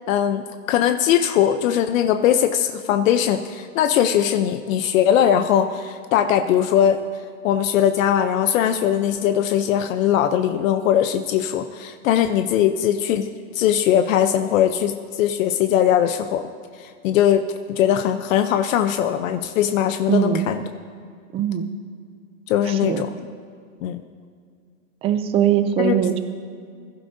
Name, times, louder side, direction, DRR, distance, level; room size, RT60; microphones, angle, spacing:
voice 1, 0.1-7.0 7.4-13.3 13.5-16.4 16.8-20.6 22.5-23.1 23.8-24.0 25.8-26.0, left 10 dB, 70° left, 8 dB, 0.8 m, -20 dB
voice 2, 20.1-20.5 21.3-21.7 22.7-23.0 25.0-26.2, right 9 dB, 15° right, 10 dB, 0.3 m, -21 dB
22.0 x 11.5 x 2.7 m, 2.2 s
supercardioid pair, 140°, 41 cm